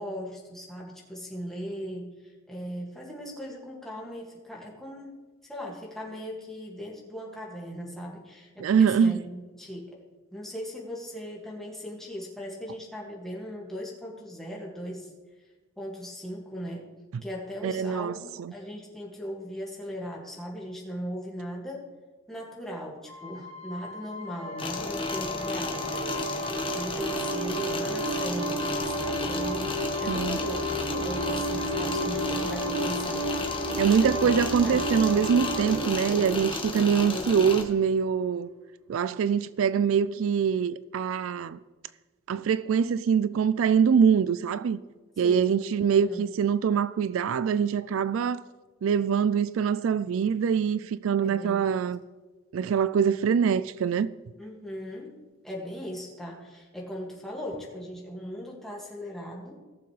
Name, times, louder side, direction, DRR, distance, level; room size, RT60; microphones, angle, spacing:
voice 1, 0.0-5.1 5.4-9.9 10.3-15.1 15.8-16.8 17.2-21.9 22.3-34.3 34.6-34.8 35.6-36.4 36.7-37.4 45.2-45.5 45.9-46.2 51.2-51.7 54.4-55.1 55.4-59.6, equal, ahead, 2.1 m, -38 dB
voice 2, 8.6-9.2 17.6-18.5 30.1-30.4 33.8-38.5 38.9-41.6 42.3-44.8 45.2-48.4 48.8-52.0 52.5-54.1, right 7 dB, 70° right, 0.3 m, -24 dB
sound 1, 23.1-37.5, equal, 90° right, 1.2 m, -32 dB
sound 2, 24.6-37.6, left 3 dB, 25° left, 1.2 m, -34 dB
18.5 x 7.0 x 3.3 m
head